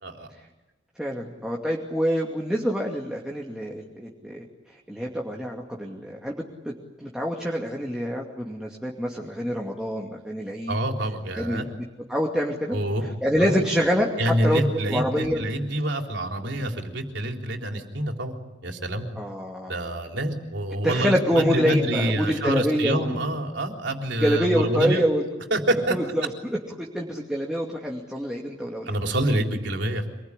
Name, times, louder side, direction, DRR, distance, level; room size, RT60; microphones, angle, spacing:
voice 1, 1.0-4.4 4.9-6.4 7.0-10.7 11.3-11.8 12.1-12.8 13.0-14.6 14.9-15.4 19.2-19.8 20.8-23.2 24.2-25.2 25.9-26.3 26.8-29.0, equal, 5° right, -2 dB, 2.5 m, -26 dB
voice 2, 10.7-11.6 12.7-13.0 13.4-13.6 14.2-18.3 18.6-19.1 19.7-25.0 25.5-26.0 28.9-30.1, right 1 dB, 65° right, 3 dB, 3.8 m, -26 dB
26.5 x 21.0 x 10.0 m, 1.1 s
head